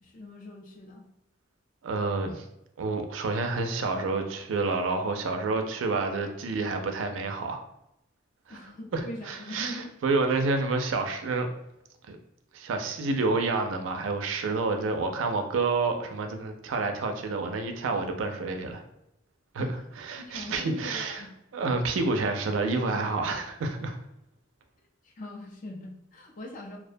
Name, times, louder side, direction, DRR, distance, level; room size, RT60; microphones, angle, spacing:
voice 1, 0.0-1.1 8.5-9.9 19.6-19.7 20.2-21.4 25.0-26.8, left 1 dB, 45° left, 1 dB, 0.5 m, -42 dB
voice 2, 1.8-2.5 2.8-7.6 8.5-8.6 8.9-11.5 12.1-12.2 12.5-18.8 19.5-19.7 20.0-21.2 21.5-24.0, right 3 dB, 75° right, 5 dB, 0.4 m, -29 dB
2.4 x 2.1 x 2.5 m, 0.80 s
head